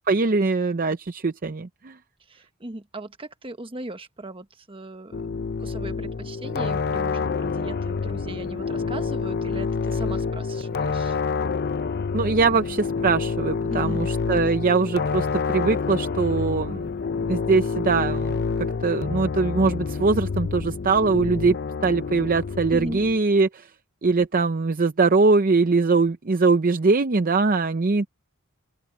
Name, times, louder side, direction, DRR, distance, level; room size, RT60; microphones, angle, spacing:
voice 1, 0.1-2.0 12.1-16.9 17.3-18.4 18.8-21.6 21.8-23.7 24.0-28.1, right 4 dB, 40° right, 0.6 m, -22 dB
voice 2, 2.3-5.3 5.6-11.2 13.7-14.0 22.7-23.0, right 2 dB, 25° right, 1.3 m, -38 dB
sound 1, 5.1-23.2, left 5 dB, 45° left, 0.5 m, -28 dB
open air
head